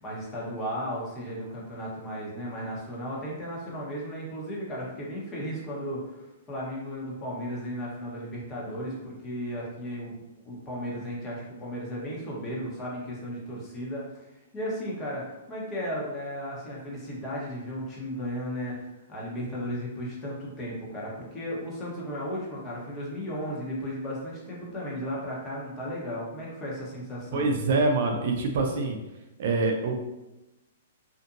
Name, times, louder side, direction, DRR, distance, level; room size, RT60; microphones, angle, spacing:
voice 1, 0.0-27.5, equal, 25° left, -5 dB, 1.0 m, -35 dB
voice 2, 27.3-29.0 29.4-29.9, right 3 dB, 60° right, 2 dB, 0.4 m, -25 dB
2.6 x 2.5 x 2.5 m, 0.99 s
hypercardioid pair, 130°, 0 cm